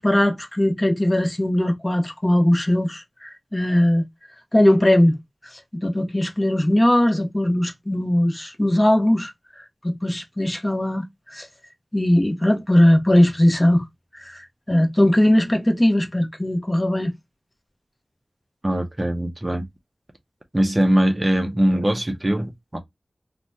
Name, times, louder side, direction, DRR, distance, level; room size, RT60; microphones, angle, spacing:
voice 1, 0.0-4.0 4.5-5.2 5.7-9.3 9.8-11.5 11.9-13.8 14.1-17.1, left 1 dB, 20° left, 0.7 m, -19 dB
voice 2, 18.6-19.7 20.5-22.8, right 1 dB, 25° right, 0.5 m, -21 dB
2.7 x 2.1 x 3.4 m
wide cardioid pair, 75°, 0 cm